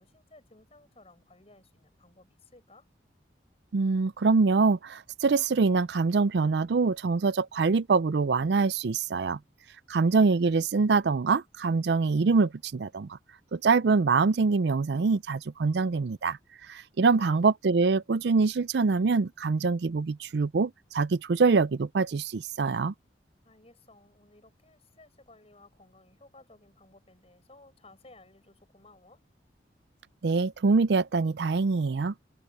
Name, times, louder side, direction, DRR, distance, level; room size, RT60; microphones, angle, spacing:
voice 1, 0.0-2.9 17.2-17.4 23.4-29.2, left 2 dB, 35° left, 7.9 m, -56 dB
voice 2, 3.7-9.4 9.9-13.2 13.5-22.9 30.2-32.1, right 4 dB, 65° right, 0.5 m, -24 dB
head